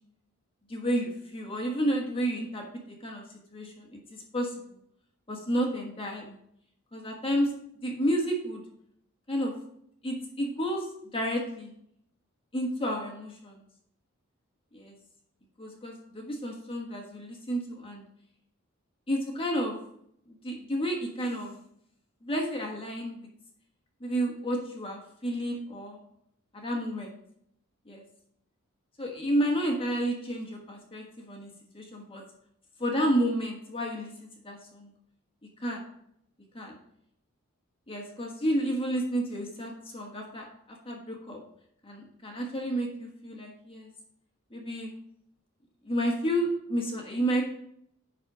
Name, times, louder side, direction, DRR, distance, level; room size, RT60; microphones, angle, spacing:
voice 1, 0.7-3.2 3.5-4.5 5.3-6.4 6.9-7.5 7.8-8.6 9.3-9.5 10.0-10.9 11.1-11.7 12.5-13.6 14.7-14.9 15.6-18.0 19.1-19.8 20.3-21.6 22.2-23.3 24.0-26.0 26.5-27.2 27.9-28.0 29.0-32.2 32.8-34.9 35.6-35.8 36.5-36.8 37.9-40.5 40.8-41.4 41.8-43.9 44.5-44.9 45.8-47.4, equal, 25° left, 0 dB, 1.4 m, -31 dB
10.5 x 4.2 x 5.0 m, 0.71 s
head